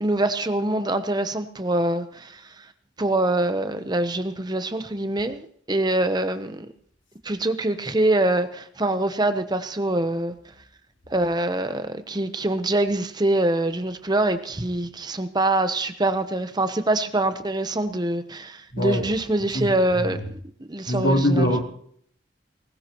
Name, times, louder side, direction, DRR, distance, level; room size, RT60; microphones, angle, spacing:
voice 1, 0.0-2.4 3.0-6.7 7.2-10.4 11.1-20.2 20.7-21.5, right 1 dB, 20° right, 0.8 m, -24 dB
voice 2, 18.7-19.1 19.5-20.3 20.9-21.6, equal, 65° left, 3.5 m, -23 dB
20.0 x 19.0 x 3.0 m
head